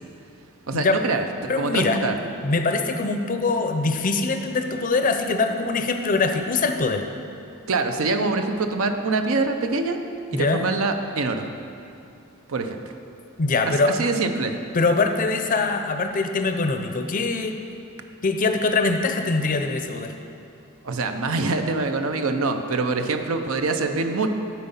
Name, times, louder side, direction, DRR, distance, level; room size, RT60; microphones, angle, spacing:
voice 1, 0.7-2.2 7.7-10.0 10.3-11.4 12.5-12.8 13.7-14.6 20.8-24.3, right 3 dB, 70° right, 6 dB, 0.6 m, -24 dB
voice 2, 1.5-2.0 2.4-7.1 10.3-10.6 13.4-13.9 14.7-17.6 18.2-20.1, left 3 dB, 40° left, 6 dB, 0.5 m, -23 dB
12.5 x 4.4 x 5.6 m, 2.7 s
head